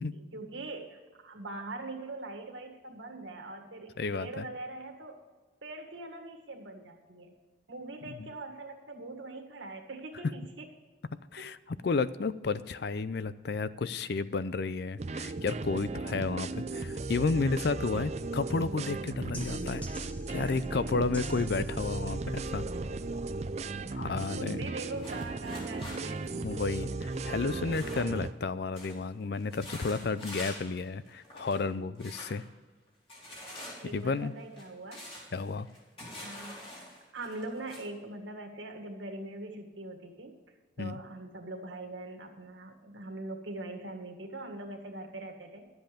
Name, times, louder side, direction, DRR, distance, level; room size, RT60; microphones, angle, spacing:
voice 1, 0.1-5.2 5.6-7.3 7.7-10.7 11.4-11.5 17.2-17.4 20.3-20.6 22.1-22.2 22.7-23.0 23.9-24.0 24.3-26.5 30.2-30.3 33.8-35.0 36.2-40.3 40.8-45.7, right 2 dB, 70° right, 3 dB, 1.8 m, -42 dB
voice 2, 4.0-4.5 8.2-8.3 11.3-19.8 20.3-22.6 23.9-24.7 26.4-32.4 33.9-34.3 35.3-35.7 40.8-41.0, left 4 dB, 55° left, 15 dB, 0.4 m, -32 dB
sound 1, 15.0-28.3, right 3 dB, 35° right, 0.4 m, -36 dB
sound 2, 19.3-24.4, equal, 5° left, 0.7 m, -45 dB
sound 3, 24.9-28.4 28.7-29.0 29.3-30.8 31.1-31.6 32.0-32.4 33.1-37.8, left 1 dB, 30° left, 3.1 m, -46 dB
12.0 x 8.0 x 5.1 m, 1.3 s
head